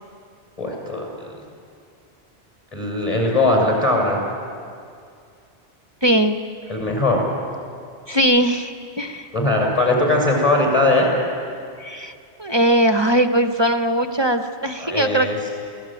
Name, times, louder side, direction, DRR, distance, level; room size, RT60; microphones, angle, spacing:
voice 1, 0.6-1.3 2.7-4.2 6.7-7.3 9.3-11.1 14.8-15.4, left 2 dB, 30° left, 0 dB, 7.0 m, -20 dB
voice 2, 6.0-6.4 8.1-9.3 11.8-15.5, right 1 dB, 25° right, 7 dB, 0.9 m, -20 dB
28.0 x 19.0 x 9.1 m, 2.3 s
omnidirectional pair, 1.2 m